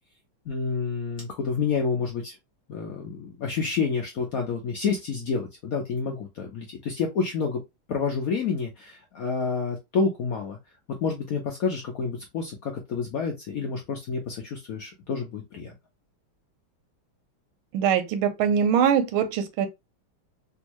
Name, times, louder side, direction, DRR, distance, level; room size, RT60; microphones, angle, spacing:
voice 1, 0.5-2.4 2.7-7.6 7.9-10.6 11.0-15.7, left 5 dB, 75° left, 0.8 m, -29 dB
voice 2, 17.7-19.7, right 8 dB, 90° right, 1.5 m, -22 dB
3.5 x 2.6 x 2.9 m
omnidirectional pair, 2.3 m